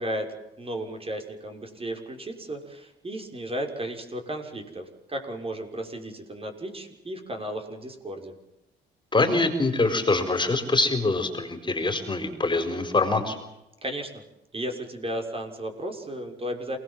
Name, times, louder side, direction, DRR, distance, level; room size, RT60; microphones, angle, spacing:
voice 1, 0.0-8.3 13.8-14.2 14.5-16.8, right 1 dB, 30° right, 4 dB, 6.4 m, -34 dB
voice 2, 9.1-13.4, left 3 dB, 25° left, 7 dB, 4.6 m, -24 dB
28.0 x 19.5 x 7.6 m, 0.91 s
cardioid pair, 90°, 20 cm